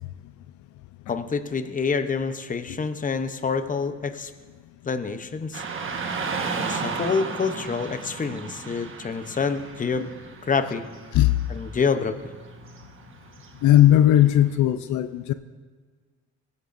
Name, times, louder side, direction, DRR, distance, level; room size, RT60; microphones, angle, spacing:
voice 1, 1.1-4.3 4.8-5.6 6.6-10.1 10.4-10.8 11.5-12.2, left 5 dB, 25° left, 10 dB, 0.8 m, -27 dB
Car passing by / Traffic noise roadway noise, 5.5-14.6, right 4 dB, 45° right, 1.4 m, -35 dB
voice 2, 13.6-15.3, left 12 dB, 75° left, 12 dB, 0.5 m, -17 dB
19.0 x 11.0 x 2.6 m, 1.5 s
cardioid pair, 90°, 30 cm